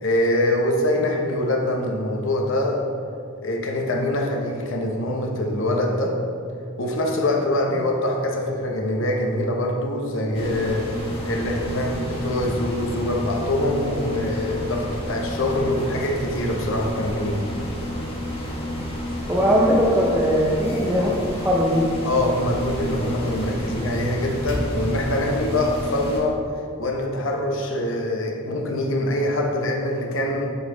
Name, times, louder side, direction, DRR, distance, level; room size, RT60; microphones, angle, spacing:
voice 1, 0.0-2.9 3.4-6.2 6.8-10.9 11.2-17.4 22.0-26.4 26.8-30.6, left 1 dB, 60° left, 1 dB, 0.9 m, -24 dB
sound 1, 10.3-26.2, equal, 25° left, 1.1 m, -30 dB
voice 2, 19.3-21.9, equal, 10° right, -4 dB, 0.5 m, -20 dB
8.0 x 4.1 x 3.7 m, 2.6 s
head